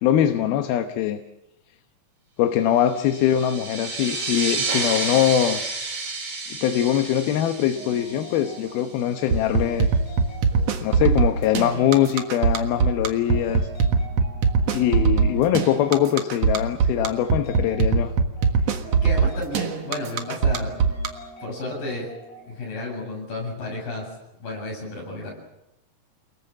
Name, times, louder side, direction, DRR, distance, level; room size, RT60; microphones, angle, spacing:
voice 1, 0.0-1.2 2.4-5.6 6.5-9.9 10.8-13.7 14.7-18.1, left 10 dB, 75° left, 7 dB, 2.9 m, -22 dB
sound 1, 2.9-9.1, right 3 dB, 70° right, 8.0 m, -30 dB
sound 2, 7.8-22.5, right 1 dB, 20° left, 8.1 m, -44 dB
sound 3, 9.3-21.1, right 5 dB, 55° right, 2.1 m, -20 dB
voice 2, 18.9-20.8 21.4-22.1 22.4-24.1 24.4-25.3, left 2 dB, 60° left, -1 dB, 9.5 m, -32 dB
29.5 x 19.5 x 7.4 m, 0.89 s
omnidirectional pair, 4.6 m